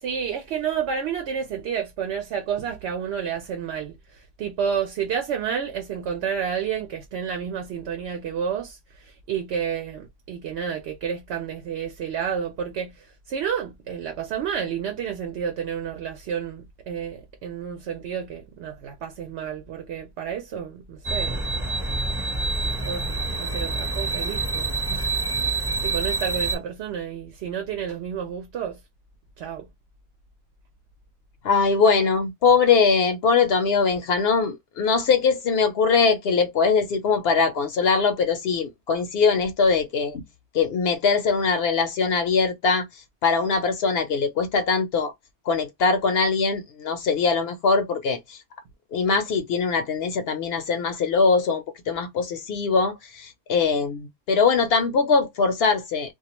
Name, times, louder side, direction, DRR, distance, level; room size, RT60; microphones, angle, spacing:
voice 1, 0.0-21.4 22.6-23.1 23.4-28.8 29.4-29.7, right 7 dB, 80° right, 0.9 m, -30 dB
sound 1, 21.0-26.6, right 3 dB, 5° right, 0.8 m, -27 dB
voice 2, 31.4-40.2 40.5-42.9 43.2-45.1 45.5-48.4 48.9-56.1, left 5 dB, 70° left, 0.8 m, -22 dB
2.2 x 2.2 x 2.9 m
omnidirectional pair, 1.1 m